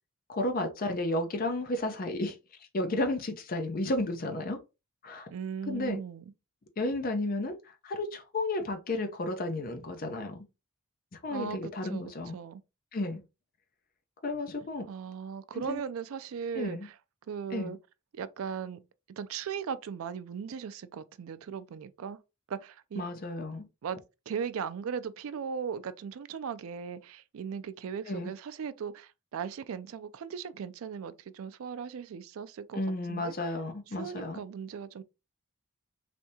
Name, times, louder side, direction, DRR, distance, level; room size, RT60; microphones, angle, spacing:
voice 1, 0.3-2.4 2.7-4.6 5.0-5.3 5.7-6.0 6.8-10.4 11.1-12.4 12.9-13.2 14.2-14.9 15.7-15.8 16.6-16.9 17.5-17.7 23.0-23.7 28.1-28.3 32.7-34.4, left 2 dB, 40° left, 0.5 m, -32 dB
voice 2, 5.3-6.3 11.3-12.6 14.9-16.9 17.3-17.8 18.1-18.8 19.2-22.2 22.5-23.1 23.8-24.0 24.3-32.8 33.1-33.3 34.0-35.0, right 7 dB, 65° right, 0.3 m, -38 dB
3.3 x 2.7 x 2.7 m
head